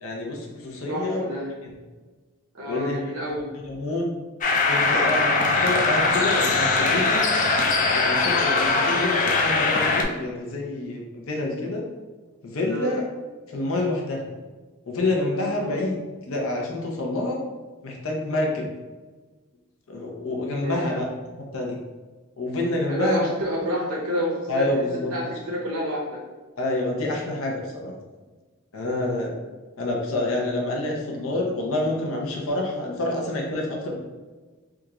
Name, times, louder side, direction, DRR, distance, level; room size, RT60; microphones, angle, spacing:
voice 1, 0.0-1.2 2.7-3.0 3.7-4.1 4.7-7.2 7.7-11.8 12.4-13.0 13.5-14.2 14.9-16.0 16.3-17.4 17.8-18.7 19.9-21.1 21.5-21.8 22.4-23.3 24.5-25.1 26.6-27.9 28.7-29.3 29.8-34.0, left 2 dB, 70° left, -1 dB, 0.7 m, -27 dB
voice 2, 0.9-1.5 2.5-3.5 12.7-12.9 15.5-15.8 20.6-21.0 22.9-26.2 28.9-29.3, equal, 85° right, -3 dB, 0.8 m, -29 dB
sound 1, 4.4-10.0, left 3 dB, 35° left, 0.4 m, -21 dB
3.5 x 2.4 x 2.9 m, 1.3 s
head